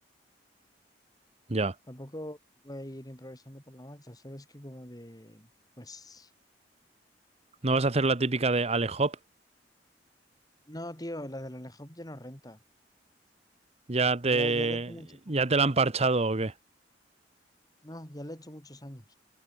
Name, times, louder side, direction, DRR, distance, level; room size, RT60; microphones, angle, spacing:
voice 1, 1.9-2.4 2.6-5.5 5.8-6.3 10.7-12.6 14.3-15.4 17.8-19.2, left 1 dB, 20° left, 5.3 m, -42 dB
voice 2, 7.6-9.2 13.9-14.9 15.3-16.5, right 3 dB, 35° right, 1.0 m, -25 dB
head